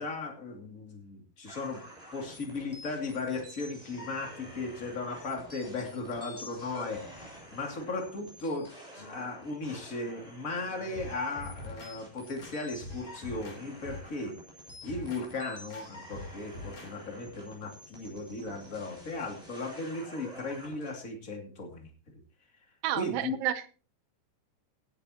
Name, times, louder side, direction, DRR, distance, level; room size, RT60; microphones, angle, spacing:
voice 1, 0.0-1.8 2.1-14.4 14.8-21.9 23.0-23.4, left 3 dB, 25° left, 3 dB, 2.5 m, -36 dB
sound 1, 1.4-20.9, equal, 10° left, 6.1 m, -49 dB
sound 2, 10.9-11.9 12.4-13.6 13.8-14.2 14.7-15.2 15.7-15.8 16.1-16.9 17.2-17.4, left 2 dB, 55° left, 4.4 m, -44 dB
voice 2, 22.8-23.7, right 12 dB, 85° right, 12 dB, 2.6 m, -31 dB
16.5 x 11.5 x 2.9 m, 0.36 s
omnidirectional pair, 3.9 m